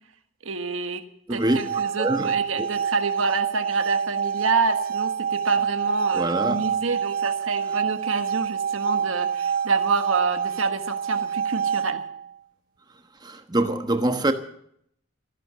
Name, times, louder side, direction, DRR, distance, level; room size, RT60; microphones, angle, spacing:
voice 1, 0.4-1.0 1.3-12.0, right 4 dB, 85° right, 1.4 m, -27 dB
voice 2, 1.3-1.6 2.0-2.7 6.1-6.7 13.2-14.3, right 1 dB, 20° right, 1.1 m, -25 dB
sound 1, 1.3-12.3, right 7 dB, 45° right, 0.7 m, -27 dB
14.0 x 12.0 x 7.5 m
head